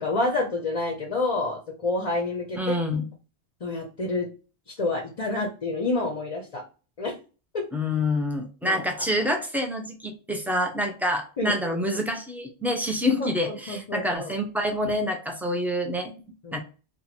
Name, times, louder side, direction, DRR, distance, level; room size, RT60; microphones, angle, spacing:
voice 1, 0.0-2.8 3.6-4.3 4.7-6.6 7.0-7.2 7.5-7.7 8.6-9.3 11.4-12.1 13.2-14.3 16.4-16.6, left 2 dB, 40° left, 1 dB, 0.6 m, -29 dB
voice 2, 2.6-3.1 7.7-16.1 16.5-16.6, left 1 dB, 5° right, 3 dB, 0.3 m, -27 dB
2.9 x 2.4 x 4.1 m, 0.35 s
omnidirectional pair, 1.1 m